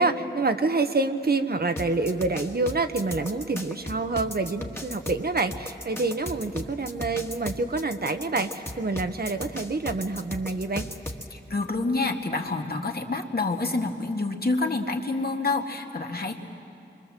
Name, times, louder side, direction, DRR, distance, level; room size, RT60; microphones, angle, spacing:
voice 1, 0.0-10.9, right 3 dB, 55° right, 8 dB, 1.1 m, -27 dB
sound 1, 1.8-11.3, left 1 dB, 15° left, 1.7 m, -36 dB
voice 2, 11.3-16.4, left 3 dB, 55° left, 3 dB, 1.9 m, -28 dB
27.5 x 24.0 x 7.5 m, 2.7 s
wide cardioid pair, 75°, 19 cm